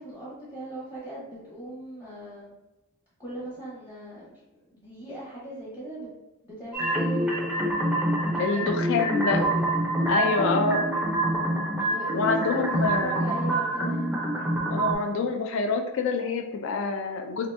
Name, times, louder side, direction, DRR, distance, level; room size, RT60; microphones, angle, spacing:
voice 1, 0.0-2.5 3.2-6.1 6.4-7.5 8.5-9.6 10.1-10.7 11.9-14.2, right 1 dB, 20° left, -9 dB, 0.8 m, -39 dB
sound 1, 6.7-14.9, right 1 dB, 5° right, 0.4 m, -26 dB
voice 2, 8.4-9.4 10.1-10.8 12.1-13.2 14.7-17.5, left 4 dB, 60° left, 4 dB, 0.3 m, -26 dB
2.9 x 2.4 x 3.2 m, 0.99 s
head